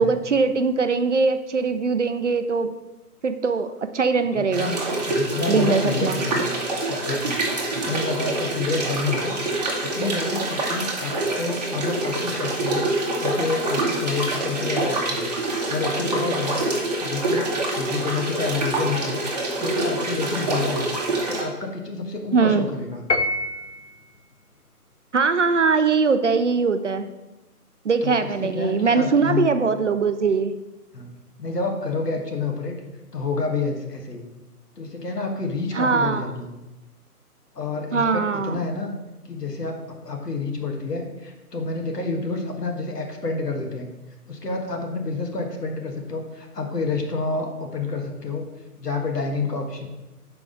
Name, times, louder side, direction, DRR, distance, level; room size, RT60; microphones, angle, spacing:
voice 1, 0.0-2.7 3.2-3.7 3.9-4.8 5.5-6.2 22.3-22.7 25.1-27.1 27.8-30.5 35.7-36.3 37.9-38.6, right 4 dB, 50° right, 9 dB, 0.5 m, -21 dB
voice 2, 4.3-6.5 6.8-7.4 7.7-9.3 9.8-16.6 17.0-19.2 19.6-20.9 21.3-23.0 28.0-29.5 30.9-31.1 31.4-32.8 33.1-34.3 34.8-36.5 37.5-38.9 39.3-43.9 44.3-48.4 48.8-49.9, left 3 dB, 80° left, 3 dB, 1.5 m, -29 dB
sound 1, 4.5-21.4, right 2 dB, 25° right, 0.9 m, -26 dB
Piano, 23.1-24.0, left 1 dB, 50° left, 0.4 m, -25 dB
6.1 x 4.8 x 5.0 m, 1.0 s
figure-of-eight pair, 150°, 47 cm